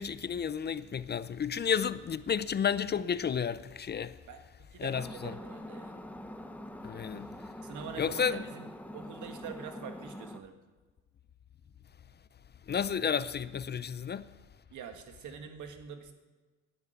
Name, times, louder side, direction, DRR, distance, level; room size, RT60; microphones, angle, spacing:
voice 1, 0.0-4.2 4.8-5.3 6.8-7.3 8.0-8.4 12.7-14.3, left 7 dB, 35° left, 0.5 m, -32 dB
voice 2, 4.3-6.0 7.6-10.6 14.7-16.1, right 7 dB, 75° right, 1.7 m, -45 dB
sound 1, 4.9-10.4, left 1 dB, 5° left, 0.9 m, -44 dB
10.5 x 9.6 x 9.4 m
cardioid pair, 90°, 30 cm